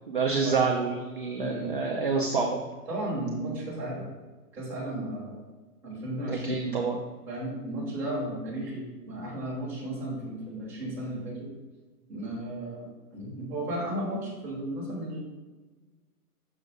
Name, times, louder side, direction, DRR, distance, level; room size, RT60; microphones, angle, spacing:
voice 1, 0.1-2.6 6.3-7.0, right 4 dB, 35° right, 0 dB, 0.4 m, -27 dB
voice 2, 1.3-1.8 2.9-4.0 4.5-5.4 5.8-6.8 7.3-11.5 12.1-12.9 13.1-15.2, right 1 dB, 5° right, -7 dB, 1.1 m, -34 dB
6.3 x 3.9 x 5.0 m, 1.3 s
hypercardioid pair, 165°, 47 cm